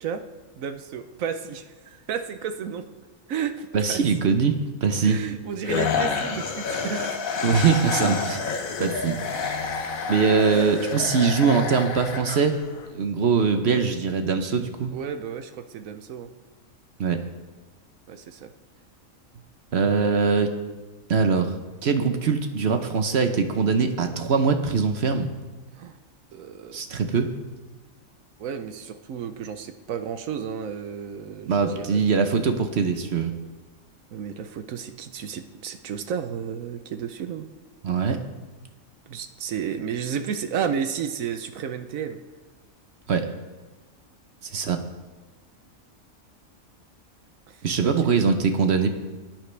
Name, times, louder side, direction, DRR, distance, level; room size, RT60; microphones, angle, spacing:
voice 1, 0.6-2.9 3.3-4.0 5.0-7.2 10.5-10.7 14.9-16.3 18.1-18.5 25.8-26.0 26.3-26.8 28.4-32.0 34.1-37.5 39.1-42.2 47.5-47.6 47.8-48.1, right 7 dB, 80° right, 9 dB, 1.2 m, -32 dB
voice 2, 3.7-5.2 7.4-8.4 8.8-9.2 10.1-12.6 12.9-14.9 17.0-17.2 19.7-20.5 21.1-21.6 21.8-25.3 26.7-27.3 31.5-33.3 37.8-38.2 43.1-43.3 44.5-44.8 47.6-48.9, right 5 dB, 55° right, 7 dB, 1.0 m, -22 dB
sound 1, 5.6-12.9, left 5 dB, 85° left, 1.4 m, -29 dB
18.5 x 9.2 x 3.3 m, 1.2 s
omnidirectional pair, 1.4 m